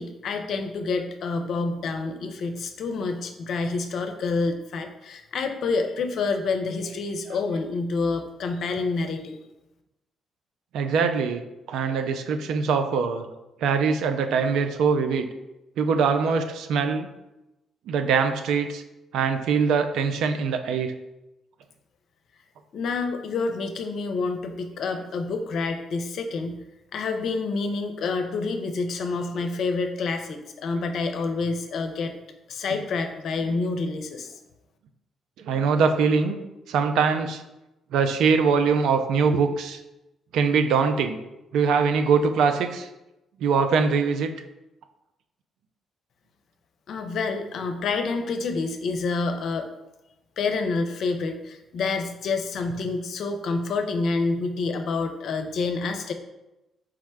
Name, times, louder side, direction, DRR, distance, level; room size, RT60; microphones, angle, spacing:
voice 1, 0.0-9.4 22.7-26.6 26.9-32.1 32.5-34.4 46.9-49.7 50.4-56.1, left 4 dB, 65° left, 6 dB, 0.5 m, -28 dB
voice 2, 10.7-11.4 11.7-13.3 13.6-15.3 15.8-17.1 17.9-18.8 19.1-20.9 33.5-33.6 35.4-36.4 36.7-37.4 37.9-39.8 40.3-41.2 41.5-42.9 43.4-44.3, right 5 dB, 75° right, 7 dB, 0.4 m, -22 dB
4.7 x 2.1 x 4.7 m, 0.95 s
hypercardioid pair, 55°, 0 cm